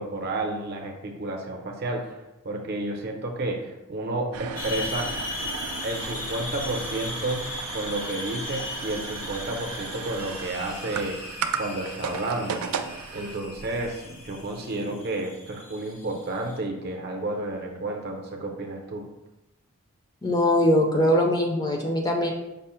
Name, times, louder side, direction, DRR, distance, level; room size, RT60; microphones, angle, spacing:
voice 1, 0.0-5.1 5.8-7.5 7.7-11.2 11.6-12.6 13.1-19.1, right 2 dB, 50° right, 2 dB, 0.6 m, -31 dB
sound 1, 4.3-14.7, right 6 dB, 85° right, 0.3 m, -36 dB
sound 2, 4.6-16.6, left 3 dB, 85° left, 0.8 m, -37 dB
voice 2, 20.2-22.3, left 1 dB, 20° left, 1 dB, 0.4 m, -21 dB
5.4 x 2.0 x 4.2 m, 0.95 s
head